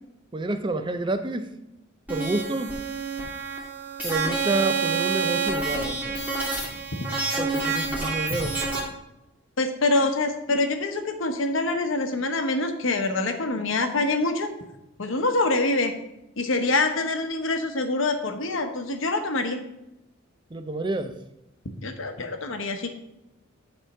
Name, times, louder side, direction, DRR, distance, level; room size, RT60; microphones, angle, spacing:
voice 1, 0.3-1.6 2.1-2.8 4.0-6.2 7.4-8.6 20.5-21.2, right 2 dB, 25° right, 9 dB, 0.5 m, -29 dB
sound 1, 2.1-8.8, right 4 dB, 10° right, 1.9 m, -28 dB
voice 2, 9.6-14.5 15.0-15.9 16.4-19.6 21.8-22.9, left 2 dB, 70° left, 6 dB, 1.0 m, -25 dB
10.0 x 3.6 x 5.3 m, 0.88 s
head